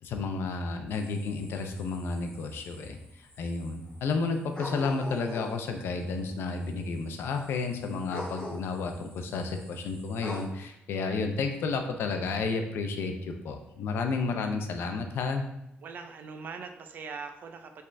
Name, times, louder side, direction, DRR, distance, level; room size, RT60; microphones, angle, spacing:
voice 1, 0.0-15.4, left 4 dB, 85° left, 5 dB, 0.6 m, -32 dB
sound 1, 0.9-5.7 6.3-6.4 6.6-10.4, left 1 dB, 25° left, 1.0 m, -44 dB
voice 2, 15.8-17.8, right 5 dB, 55° right, 6 dB, 0.4 m, -41 dB
5.4 x 3.4 x 2.6 m, 0.83 s
wide cardioid pair, 170°, 4 cm